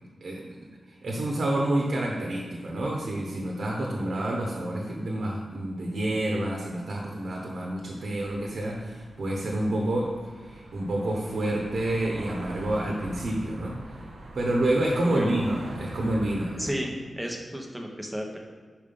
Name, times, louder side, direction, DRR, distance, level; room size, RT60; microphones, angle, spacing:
voice 1, 0.2-0.6 0.9-14.0 14.3-16.7 17.2-17.3, right 1 dB, 65° right, -1 dB, 1.0 m, -28 dB
sound 1, 8.2-16.8, right 1 dB, 85° right, 1.0 m, -43 dB
voice 2, 15.0-15.3 16.6-18.4, equal, 5° right, 1 dB, 0.9 m, -33 dB
5.5 x 4.9 x 5.3 m, 1.6 s
wide cardioid pair, 120°, 0 cm